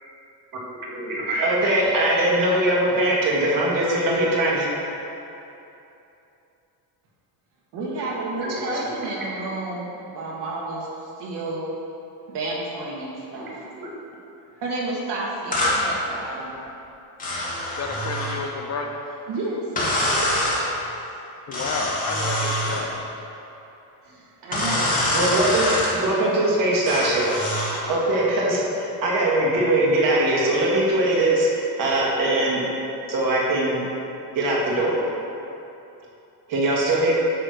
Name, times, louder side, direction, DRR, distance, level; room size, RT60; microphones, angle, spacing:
voice 1, 0.9-4.7 8.4-9.0 13.8-13.9 25.1-25.7 25.9-27.3 27.9-32.6 33.1-33.8 34.3-35.0 36.5-37.1, right 1 dB, 50° right, -4 dB, 1.8 m, -21 dB
voice 2, 7.7-10.9 11.2-11.7 12.3-13.5 14.5-16.5 19.3-20.7 24.0-24.9, right 2 dB, 70° right, -4 dB, 1.8 m, -31 dB
sound 1, 15.5-15.8 17.2-18.4 19.8-20.6 21.5-22.8 24.5-25.9 26.9-27.8, left 1 dB, 20° left, 1.5 m, -24 dB
voice 3, 17.8-19.0 21.5-22.9, left 4 dB, 40° left, 3 dB, 0.6 m, -30 dB
9.0 x 3.4 x 6.4 m, 2.9 s
cardioid pair, 145°, 43 cm